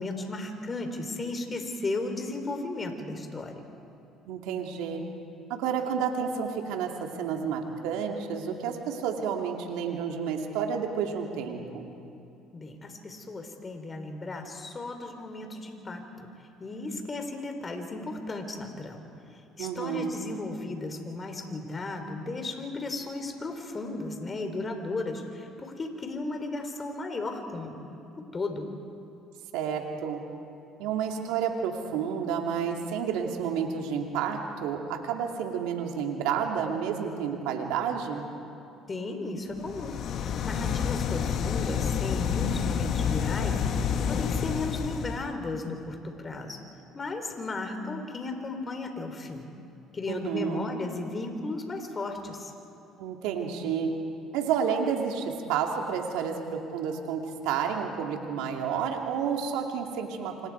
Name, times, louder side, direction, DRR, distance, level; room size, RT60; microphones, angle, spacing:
voice 1, 0.0-3.6 12.5-16.3 16.6-19.1 19.3-28.7 38.9-46.6 46.9-49.5 49.9-52.5, left 2 dB, 30° left, 5 dB, 3.6 m, -35 dB
voice 2, 4.2-5.0 5.5-12.0 19.6-20.1 29.5-30.2 30.8-38.3 50.1-50.7 53.0-53.9 54.3-56.4 56.7-60.5, right 7 dB, 85° right, 2 dB, 2.7 m, -30 dB
sound 1, 39.6-45.3, left 7 dB, 60° left, 1.4 m, -29 dB
29.0 x 26.5 x 4.8 m, 2.7 s
supercardioid pair, 85°, 0 cm